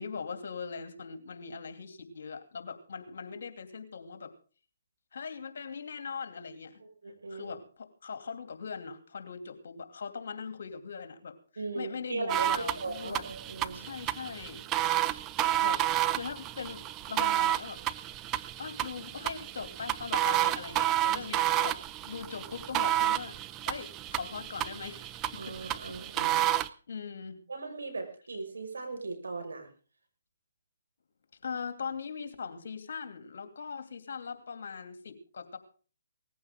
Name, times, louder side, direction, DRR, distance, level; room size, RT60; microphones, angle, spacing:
voice 1, 0.0-4.3 5.1-6.8 7.3-13.2 13.7-14.6 15.0-15.2 15.6-15.9 16.1-17.8 18.6-21.8 22.0-23.4 23.7-26.0 26.3-27.4 31.4-35.6, left 5 dB, 60° left, 8 dB, 2.7 m, -41 dB
voice 2, 7.0-7.5 11.6-13.9 20.7-20.8 21.1-21.3 25.4-26.5 27.5-29.7, right 3 dB, 80° right, 5 dB, 5.8 m, -38 dB
sound 1, 12.3-26.7, right 14 dB, 20° right, 0.6 m, -31 dB
19.0 x 15.0 x 3.8 m, 0.40 s
hypercardioid pair, 145°, 0 cm